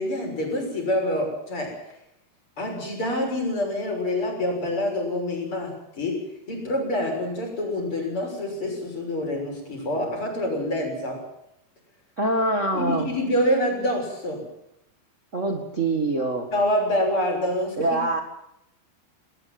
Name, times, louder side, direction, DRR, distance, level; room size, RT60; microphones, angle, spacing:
voice 1, 0.0-1.8 2.6-11.2 12.7-14.4 16.5-17.8, left 1 dB, 30° left, 2 dB, 7.1 m, -26 dB
voice 2, 12.2-13.1 15.3-16.5 17.8-18.2, right 2 dB, 65° right, 3 dB, 0.7 m, -24 dB
20.0 x 19.0 x 7.7 m, 0.82 s
omnidirectional pair, 4.6 m